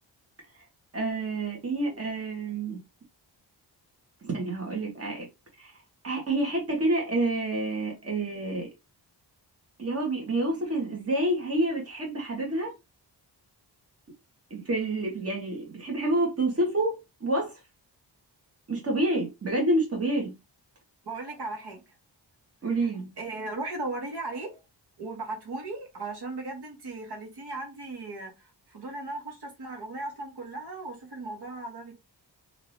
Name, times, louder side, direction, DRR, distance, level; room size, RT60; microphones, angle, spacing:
voice 1, 0.9-2.8 4.2-5.3 5.6-5.7 6.0-8.7 9.8-12.7 14.5-17.5 18.7-20.3 22.6-23.1, right 2 dB, 35° right, 1.4 m, -28 dB
voice 2, 21.0-21.8 23.2-24.6 25.0-31.9, right 2 dB, 65° right, 1.4 m, -37 dB
2.8 x 2.7 x 3.2 m
wide cardioid pair, 160°, 43 cm